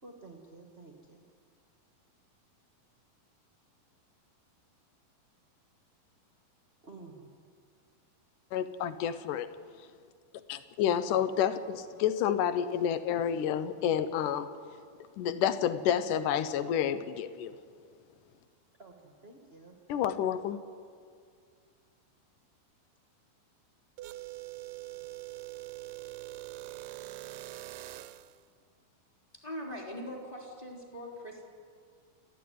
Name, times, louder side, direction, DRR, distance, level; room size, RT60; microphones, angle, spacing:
voice 1, 0.0-1.3 6.8-7.3 10.9-11.2 18.8-19.8, right 3 dB, 25° right, 2 dB, 1.5 m, -51 dB
voice 2, 8.5-9.5 10.5-14.5 15.2-17.5 19.9-20.6, left 9 dB, 70° left, 12 dB, 2.3 m, -29 dB
sound 1, 24.0-28.4, right 17 dB, 80° right, 2.3 m, -43 dB
voice 3, 29.4-31.4, equal, 10° left, -1 dB, 3.6 m, -41 dB
29.0 x 13.5 x 9.6 m, 2.1 s
omnidirectional pair, 4.2 m